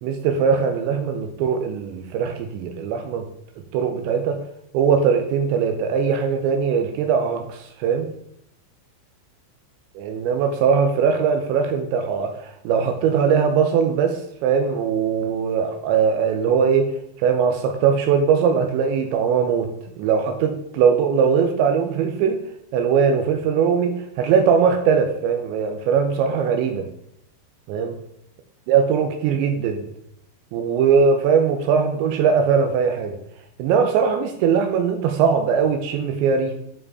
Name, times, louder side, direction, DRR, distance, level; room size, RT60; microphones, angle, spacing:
voice 1, 0.0-3.3 3.7-4.4 4.7-8.1 10.0-16.9 17.2-19.7 20.0-22.4 22.7-26.9 27.7-28.0 28.7-29.8 30.5-33.2 33.6-36.5, right 6 dB, 80° right, 5 dB, 2.8 m, -20 dB
10.0 x 4.9 x 4.8 m, 0.74 s
omnidirectional pair, 5.7 m